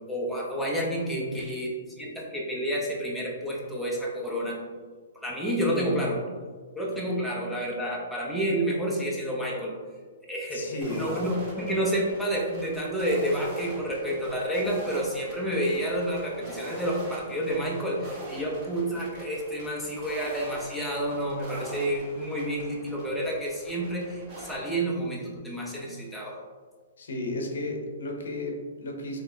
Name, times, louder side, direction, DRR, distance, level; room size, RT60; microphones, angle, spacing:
voice 1, 0.1-1.7 2.0-4.6 5.1-6.2 6.8-9.8 10.2-26.4, right 1 dB, ahead, -5 dB, 0.6 m, -29 dB
voice 2, 0.9-1.4 5.5-6.1 10.5-11.1 27.0-29.2, left 1 dB, 75° left, 2 dB, 0.7 m, -34 dB
sound 1, 10.8-24.5, right 1 dB, 30° right, 1.0 m, -42 dB
4.0 x 3.0 x 2.7 m, 1.5 s
hypercardioid pair, 155°, 0 cm